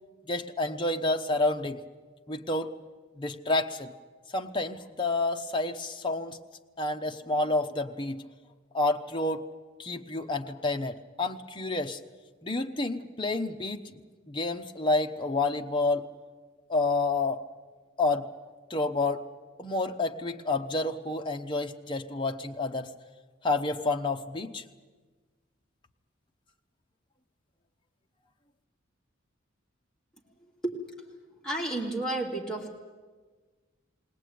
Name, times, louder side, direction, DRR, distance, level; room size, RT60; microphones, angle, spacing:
voice 1, 0.3-1.8 2.3-2.7 3.2-3.9 4.3-6.4 6.8-8.2 8.7-9.4 9.8-12.0 12.4-14.0 14.3-16.1 16.7-17.4 18.0-18.3 18.7-19.2 19.6-22.9 23.4-24.6, left 2 dB, 25° left, 4 dB, 0.8 m, -29 dB
voice 2, 31.4-32.8, right 2 dB, 5° left, -3 dB, 2.6 m, -31 dB
20.5 x 18.0 x 9.3 m, 1.4 s
head